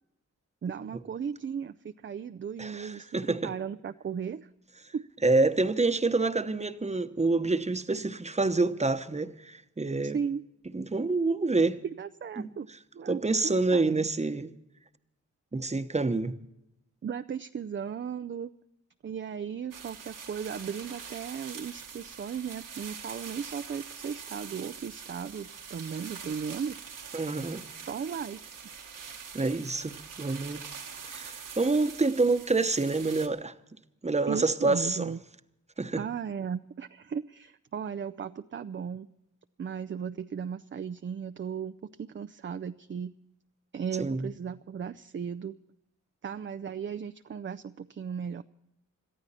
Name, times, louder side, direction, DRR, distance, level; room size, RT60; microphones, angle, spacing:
voice 1, 0.6-4.5 4.9-5.0 10.0-10.4 11.8-12.7 12.9-14.1 17.0-18.5 19.0-26.8 27.9-28.4 34.3-35.2 35.9-39.1 39.6-43.1 43.7-45.6 46.2-48.4, right 7 dB, 40° right, 0.5 m, -36 dB
voice 2, 2.6-3.5 5.2-10.2 10.7-11.8 12.4-12.5 13.1-14.5 15.5-16.3 27.1-27.6 29.3-30.6 31.0-33.5 34.0-35.1 35.8-36.0 44.0-44.3, right 3 dB, 20° right, 1.0 m, -27 dB
Rustling Dead Leaves By Hand, 19.7-33.3, right 6 dB, 80° right, 1.6 m, -44 dB
22.5 x 13.5 x 4.2 m
cardioid pair, 60°, 31 cm